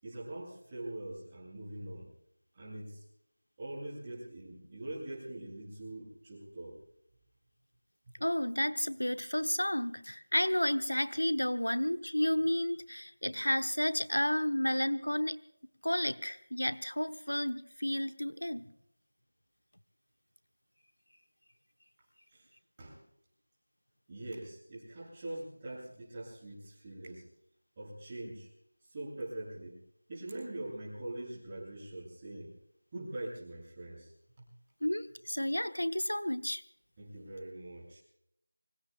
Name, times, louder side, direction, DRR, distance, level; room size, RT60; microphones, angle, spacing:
voice 1, 0.0-2.1 2.5-3.0 3.6-6.8 8.1-8.2 22.3-22.5 22.8-23.0 24.1-27.3 27.8-28.5 28.8-29.8 30.1-32.5 32.9-34.1 34.4-34.5 37.0-38.0, right 1 dB, 20° right, -5 dB, 7.8 m, -43 dB
voice 2, 8.2-15.4 15.8-18.7 34.8-36.6, left 1 dB, 90° left, 11 dB, 1.1 m, -31 dB
25.0 x 24.5 x 2.3 m, 0.74 s
figure-of-eight pair, 170°, 0 cm